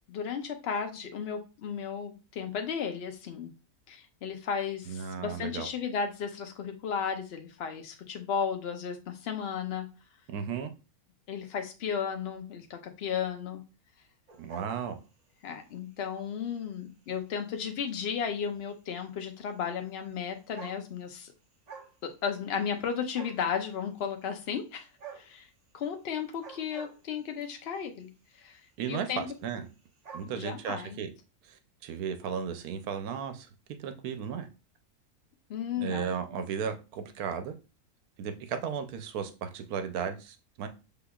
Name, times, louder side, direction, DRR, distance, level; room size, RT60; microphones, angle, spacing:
voice 1, 0.1-3.5 3.9-9.9 11.3-13.6 15.4-21.3 22.0-24.9 25.1-25.5 25.7-28.1 28.4-28.6 28.9-29.3 30.3-31.0 35.5-36.4, left 7 dB, 55° left, 5 dB, 0.8 m, -34 dB
voice 2, 4.9-5.7 10.3-10.7 14.4-15.0 28.8-29.7 30.1-31.1 31.5-33.5 33.8-34.5 35.8-37.5 38.2-40.7, right 7 dB, 85° right, 8 dB, 1.2 m, -35 dB
sound 1, 14.3-15.4 16.0-16.3 17.1-17.2 17.4-17.5 17.8-17.9 19.0-19.1 20.1-20.2 20.4-21.2 21.5-22.0 22.3-22.9 23.1-23.5 25.0-25.3 26.3-27.5 28.3-28.6 28.9-29.0 29.2-29.3 29.5-30.3, right 6 dB, 40° right, 0.6 m, -47 dB
5.8 x 3.5 x 2.3 m, 0.31 s
omnidirectional pair, 1.6 m